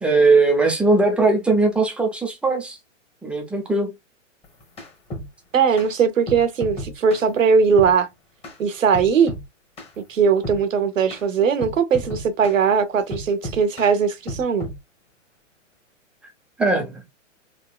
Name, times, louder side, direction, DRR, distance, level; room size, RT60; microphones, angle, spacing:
voice 1, 0.0-2.8 3.2-3.9 16.6-17.0, right 3 dB, 5° right, 0.4 m, -19 dB
sound 1, 4.4-5.3 5.8-5.9 6.3-7.3 7.8-8.0 8.4-8.6 8.9-9.5 9.8-10.0 10.4-10.6 11.1-11.2 11.6-12.6 13.1-13.9 14.3-14.8, equal, 15° left, 1.2 m, -33 dB
voice 2, 5.5-8.1 8.6-9.3 10.1-14.7, right 6 dB, 90° right, 0.9 m, -19 dB
3.6 x 2.9 x 2.2 m
hypercardioid pair, 130°, 38 cm